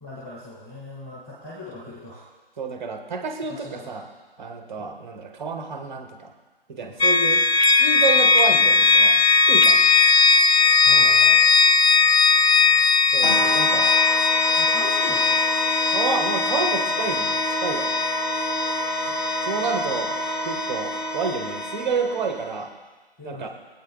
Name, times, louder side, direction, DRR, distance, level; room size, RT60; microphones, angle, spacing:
voice 1, 0.0-2.3 3.5-4.0 4.8-5.0 5.9-6.0 6.8-7.0 10.8-11.4 14.5-15.4 23.2-23.5, left 2 dB, 15° left, -8 dB, 1.7 m, -39 dB
voice 2, 2.6-4.1 4.4-6.3 6.7-7.4 7.8-9.8 13.1-13.9 15.9-17.9 19.1-19.2 19.4-20.2 20.4-22.7 23.2-23.5, right 4 dB, 5° right, 5 dB, 0.5 m, -29 dB
sound 1, 7.0-20.8, left 4 dB, 85° left, 0.5 m, -19 dB
sound 2, 13.2-22.7, equal, 55° left, 2.5 m, -28 dB
25.0 x 8.6 x 2.3 m, 1.3 s
figure-of-eight pair, 145°, 31 cm